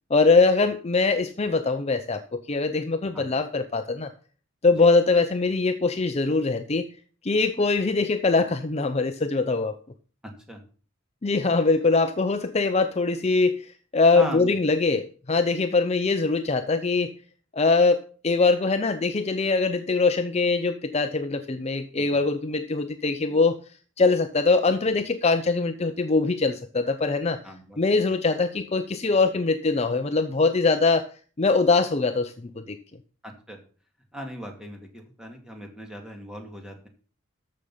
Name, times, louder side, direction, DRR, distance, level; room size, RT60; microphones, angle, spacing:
voice 1, 0.1-4.1 4.6-6.9 7.2-9.8 11.2-17.1 17.5-23.6 24.0-27.4 27.8-31.1 31.4-32.8, left 3 dB, 30° left, 9 dB, 0.6 m, -22 dB
voice 2, 14.1-14.6 22.1-22.2 27.4-28.1 33.2-33.6 34.1-36.9, equal, 5° right, 2 dB, 2.2 m, -38 dB
13.5 x 6.4 x 5.5 m, 0.40 s
head